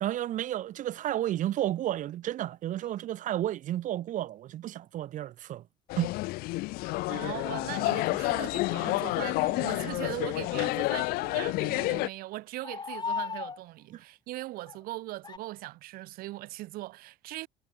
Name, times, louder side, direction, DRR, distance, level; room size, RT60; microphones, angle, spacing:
voice 1, 0.0-5.6 6.0-6.1 13.9-14.0, right 13 dB, 60° right, 2.1 m, -32 dB
sound 1, 2.8-2.9 6.2-6.3 8.3-8.4 11.0-11.3 12.6-13.6 14.7-14.8 15.2-15.4, left 5 dB, 30° left, 5.2 m, -36 dB
sound 2, 5.9-12.1, left 22 dB, 80° left, 3.1 m, -29 dB
voice 2, 6.8-17.5, right 18 dB, 75° right, 5.2 m, -40 dB
cardioid pair, 110°, 15 cm